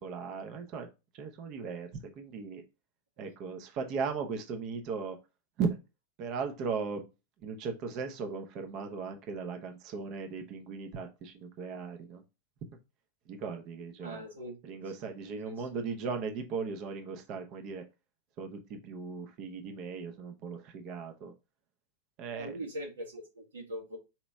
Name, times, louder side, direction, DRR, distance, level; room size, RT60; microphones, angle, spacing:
voice 1, 0.0-0.9 1.1-2.6 3.2-5.2 5.6-5.8 6.2-7.0 7.4-12.2 13.3-14.3 14.6-17.8 18.4-21.3 22.2-22.6, right 5 dB, 40° right, 5 dB, 0.9 m, -37 dB
voice 2, 14.0-14.7 15.4-15.8 22.3-24.0, equal, 70° right, -1 dB, 1.4 m, -42 dB
4.4 x 3.0 x 3.4 m, 0.27 s
figure-of-eight pair, 90°, 0 cm